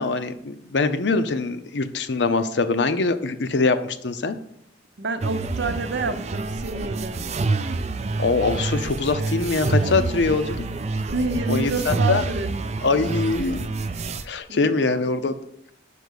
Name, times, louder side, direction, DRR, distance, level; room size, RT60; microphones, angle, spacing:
voice 1, 0.0-4.4 8.2-10.6 11.5-12.2 12.8-13.7 14.2-15.3, left 3 dB, 80° left, 10 dB, 0.6 m, -23 dB
voice 2, 5.0-7.2 11.1-12.5 14.5-15.3, right 3 dB, 75° right, 9 dB, 0.7 m, -29 dB
sound 1, 5.2-14.2, right 3 dB, 35° right, 0.4 m, -27 dB
5.7 x 5.3 x 6.4 m, 0.72 s
head